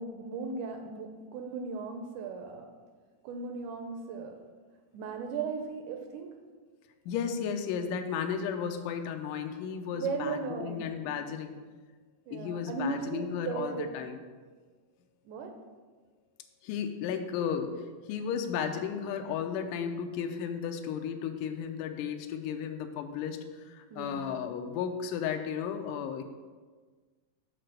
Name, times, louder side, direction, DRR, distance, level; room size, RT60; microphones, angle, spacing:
voice 1, 0.0-2.7 3.2-4.4 4.9-6.3 9.9-11.0 12.3-13.9 15.2-15.6 23.9-24.3, right 4 dB, 80° right, 4 dB, 1.8 m, -37 dB
voice 2, 7.1-11.5 12.3-14.2 16.6-17.8 18.1-23.4 23.7-26.2, left 7 dB, 80° left, 5 dB, 2.0 m, -34 dB
6.7 x 4.5 x 6.5 m, 1.4 s
omnidirectional pair, 4.1 m